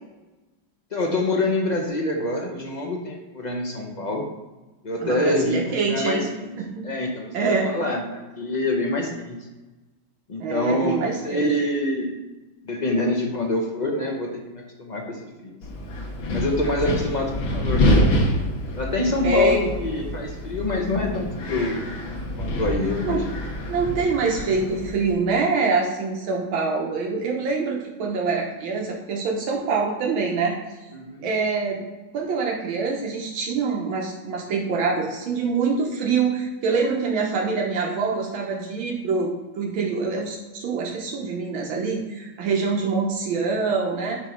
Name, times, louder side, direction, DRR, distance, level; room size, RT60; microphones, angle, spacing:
voice 1, 0.9-4.2 4.8-6.5 6.8-9.5 10.3-12.1 12.6-15.6 16.3-18.1 18.7-21.8 22.4-23.3 30.9-31.3, left 1 dB, 35° left, 0 dB, 0.7 m, -26 dB
voice 2, 5.0-6.2 6.6-6.9 7.3-7.7 10.4-11.4 19.2-19.7 23.0-23.2 23.7-30.5 31.2-31.8 32.1-44.2, right 4 dB, 80° right, -1 dB, 1.7 m, -25 dB
Wind, 15.6-25.1, left 1 dB, 90° left, 1.9 m, -26 dB
8.9 x 3.0 x 5.2 m, 1.1 s
omnidirectional pair, 2.2 m